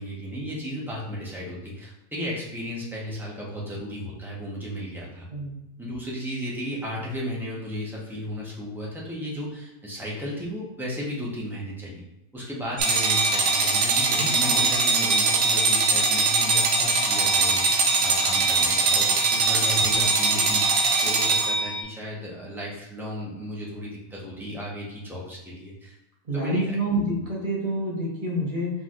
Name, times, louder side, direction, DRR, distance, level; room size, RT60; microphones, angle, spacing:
voice 1, 0.0-5.3 5.8-12.0 12.3-25.9 26.3-26.8, equal, ahead, -5 dB, 0.7 m, -34 dB
sound 1, 12.8-21.8, right 4 dB, 60° right, 0.8 m, -22 dB
voice 2, 14.2-14.7 26.2-28.7, right 1 dB, 25° right, -6 dB, 1.0 m, -28 dB
4.5 x 3.9 x 2.5 m, 0.90 s
omnidirectional pair, 1.7 m